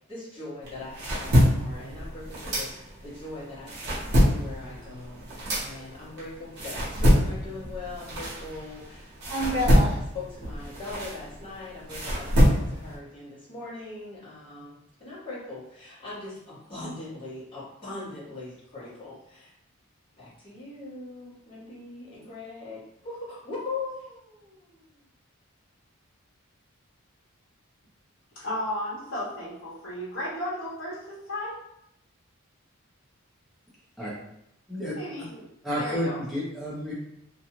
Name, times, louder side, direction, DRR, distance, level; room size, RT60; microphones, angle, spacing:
voice 1, 0.1-19.5 20.2-24.9, left 3 dB, 25° left, -11 dB, 1.2 m, -41 dB
sound 1, 0.6-3.2 3.5-8.8 9.2-12.9, equal, 50° right, 0.8 m, -24 dB
voice 2, 28.4-31.6 34.9-35.4 35.8-36.2, left 1 dB, 75° left, -11 dB, 0.9 m, -34 dB
voice 3, 35.6-36.9, equal, ahead, -7 dB, 0.6 m, -30 dB
2.5 x 2.3 x 2.9 m, 0.77 s
head